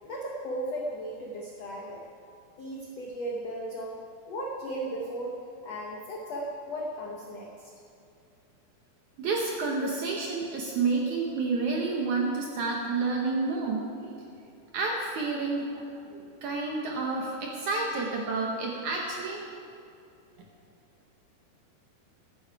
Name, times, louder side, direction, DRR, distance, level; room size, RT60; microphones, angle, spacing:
voice 1, 0.0-2.0 2.6-4.0 4.3-5.4 5.6-7.7, right 1 dB, 80° left, -1 dB, 1.4 m, -36 dB
voice 2, 9.2-14.3 14.7-19.4 20.4-20.5, right 3 dB, 70° right, -1 dB, 1.9 m, -30 dB
14.0 x 12.0 x 4.8 m, 2.6 s
omnidirectional pair, 4.8 m